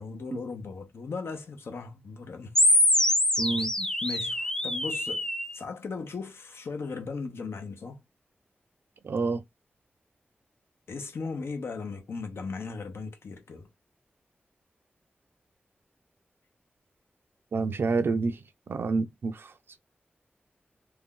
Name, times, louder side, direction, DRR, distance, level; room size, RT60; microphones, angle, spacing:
voice 1, 0.0-2.8 3.6-5.2 5.5-8.0 10.9-13.7, left 4 dB, 90° left, 0.7 m, -37 dB
sound 1, 2.5-5.5, left 1 dB, 15° left, 0.4 m, -24 dB
voice 2, 3.4-3.7 9.0-9.4 17.5-18.4 18.7-19.8, right 4 dB, 70° right, 0.4 m, -28 dB
2.6 x 2.3 x 3.6 m
wide cardioid pair, 100°, 4 cm